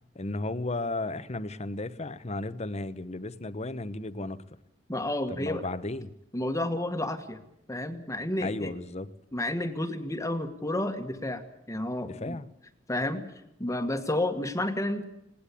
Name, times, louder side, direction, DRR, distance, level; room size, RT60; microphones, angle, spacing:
voice 1, 0.1-4.4 5.3-6.1 8.4-9.1 12.0-12.5, left 2 dB, 35° left, 13 dB, 1.0 m, -34 dB
voice 2, 4.9-5.7 6.3-7.4 7.7-8.7 9.3-11.4 11.7-12.4 12.9-13.2 13.6-15.0, left 1 dB, 15° left, 7 dB, 1.6 m, -30 dB
20.0 x 18.5 x 8.4 m, 0.83 s
head